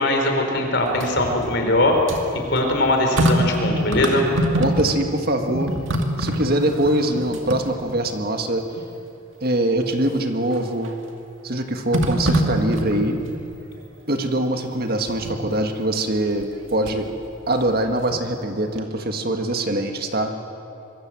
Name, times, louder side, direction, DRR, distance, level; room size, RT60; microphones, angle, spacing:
voice 1, 0.0-2.2 2.5-4.3, left 1 dB, 50° left, 2 dB, 4.4 m, -20 dB
sound 1, 0.8-5.2 5.4-8.2 8.8-8.9 10.5-11.0 11.9-13.4 15.1-15.5 16.4-17.1 17.5-18.5 18.8-18.9, right 1 dB, 65° right, 2.3 m, -25 dB
voice 2, 4.6-5.7 6.2-8.7 9.4-10.9 11.4-13.2 14.1-17.1 17.5-20.3, right 1 dB, 45° right, 5 dB, 1.8 m, -23 dB
26.0 x 23.0 x 7.7 m, 2.8 s
head